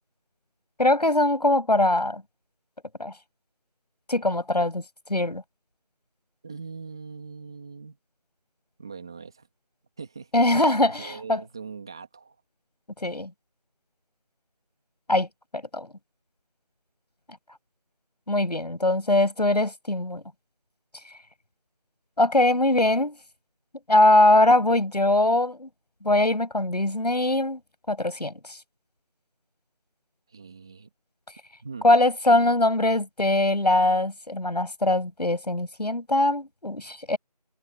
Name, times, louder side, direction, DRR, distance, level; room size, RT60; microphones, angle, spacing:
voice 1, 0.8-2.2 3.0-3.1 4.1-4.8 5.1-5.4 10.3-11.4 13.0-13.3 15.1-15.3 15.5-15.9 18.3-20.2 22.2-23.2 23.9-25.7 26.0-27.6 27.9-28.6 31.8-37.2, left 1 dB, 75° left, 7.2 m, -22 dB
voice 2, 6.4-8.0 8.8-9.5 10.0-10.3 10.8-12.4 30.3-30.9 31.6-31.8, right 5 dB, 5° right, 2.1 m, -41 dB
figure-of-eight pair, 180°, 21 cm